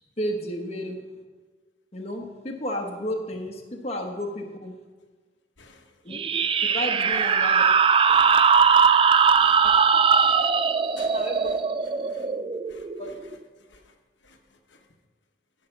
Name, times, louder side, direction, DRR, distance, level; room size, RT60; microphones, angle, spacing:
voice 1, 0.2-1.0 1.9-4.7 6.0-6.2 6.7-7.6 9.6-9.7 11.1-11.5 13.0-13.1, equal, 35° left, 1 dB, 1.1 m, -32 dB
voice 2, 5.6-6.0 7.1-7.8 8.1-10.5 11.0-11.6 12.1-12.3 12.7-13.4 13.7-13.9 14.2-14.9, left 3 dB, 80° left, 3 dB, 1.1 m, -52 dB
sound 1, 6.1-13.4, right 6 dB, 30° right, 0.3 m, -20 dB
13.0 x 5.7 x 5.8 m, 1.3 s
head